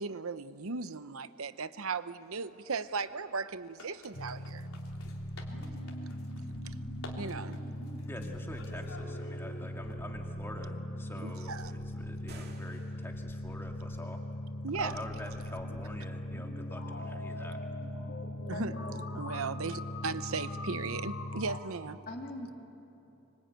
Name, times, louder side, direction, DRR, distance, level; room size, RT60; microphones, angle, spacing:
voice 1, 0.0-4.7 7.2-7.6 11.2-11.7 14.6-14.9 18.5-18.8 19.1-22.0, right 4 dB, 75° right, 0.8 m, -37 dB
sound 1, 2.1-9.9, left 3 dB, 80° left, 3.6 m, -54 dB
sound 2, 4.1-21.6, left 1 dB, 65° left, 3.8 m, -39 dB
voice 2, 8.0-14.2 14.8-17.6, left 1 dB, 10° left, 2.3 m, -46 dB
sound 3, 12.1-13.4, right 2 dB, 50° right, 2.2 m, -52 dB
voice 3, 18.5-19.0 22.1-22.5, left 1 dB, 40° left, 3.2 m, -41 dB
25.0 x 24.5 x 9.3 m
head